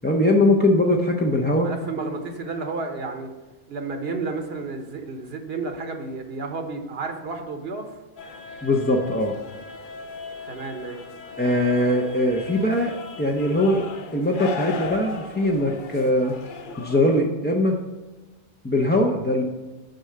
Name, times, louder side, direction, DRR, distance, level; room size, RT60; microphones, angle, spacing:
voice 1, 0.0-1.7 8.6-9.3 11.4-12.9 13.2-13.9 14.1-16.3 16.8-17.8 18.6-19.4, left 1 dB, 15° left, -1 dB, 0.4 m, -21 dB
voice 2, 1.6-3.3 3.7-8.0 10.5-11.0, right 3 dB, 75° right, 5 dB, 1.2 m, -31 dB
sound 1, 8.2-17.2, left 5 dB, 55° left, 0.8 m, -37 dB
6.6 x 4.7 x 6.5 m, 1.2 s
omnidirectional pair, 1.0 m